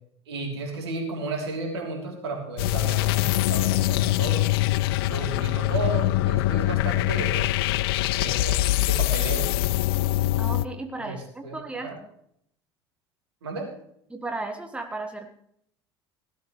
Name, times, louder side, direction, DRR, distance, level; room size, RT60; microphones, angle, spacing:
voice 1, 0.3-4.4 5.0-7.5 8.2-9.5 11.0-11.2 11.4-11.5 11.8-12.0 13.4-13.7, right 3 dB, 70° right, 1 dB, 3.2 m, -33 dB
sound 1, 2.6-10.7, left 17 dB, 60° left, 0.4 m, -23 dB
voice 2, 10.4-11.9 14.1-15.3, right 2 dB, 10° right, 6 dB, 1.4 m, -34 dB
16.5 x 13.0 x 3.2 m, 0.69 s
figure-of-eight pair, 65°, 14 cm